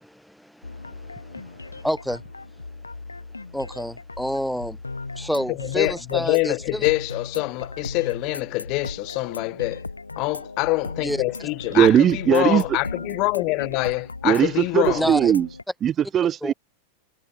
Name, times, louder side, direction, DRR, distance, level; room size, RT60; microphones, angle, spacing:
voice 1, 0.0-2.2 3.5-4.8 5.1-6.8 11.0-11.2 14.9-15.3 16.4-16.5, equal, ahead, 2.8 m, -29 dB
sound 1, 0.6-15.6, left 3 dB, 80° left, 4.1 m, -37 dB
voice 2, 5.7-9.8 10.2-11.9 12.3-15.1, left 25 dB, 40° left, 1.2 m, -25 dB
voice 3, 11.7-12.8 14.2-15.5 15.8-16.5, right 10 dB, 25° right, 0.6 m, -19 dB
figure-of-eight pair, 90°, 0 cm